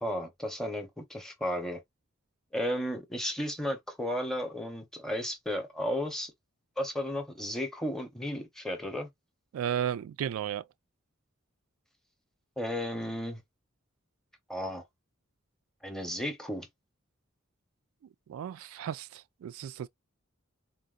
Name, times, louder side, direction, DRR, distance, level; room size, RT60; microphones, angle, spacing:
voice 1, 0.0-1.8 2.5-6.3 6.8-9.1 12.6-13.4 14.5-14.8 15.8-16.7, equal, ahead, 0.7 m, -34 dB
voice 2, 9.5-10.6 18.3-19.9, right 9 dB, 90° right, 0.3 m, -34 dB
3.9 x 2.1 x 2.3 m
head